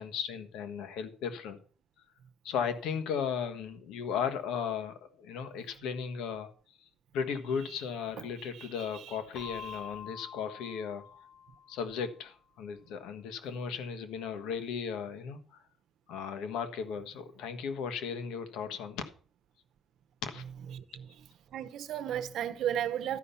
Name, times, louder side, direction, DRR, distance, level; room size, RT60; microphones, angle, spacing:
voice 1, 0.0-1.6 2.4-6.5 6.8-6.9 7.1-11.0 11.7-15.4 16.1-19.1 20.2-20.4, left 7 dB, 90° left, 1.4 m, -36 dB
voice 2, 8.2-9.8 20.7-21.2 21.5-23.2, right 10 dB, 70° right, 0.9 m, -36 dB
Keyboard (musical), 9.3-12.1, left 8 dB, 60° left, 0.8 m, -46 dB
12.5 x 5.7 x 7.0 m
cardioid pair, 120°, 0 cm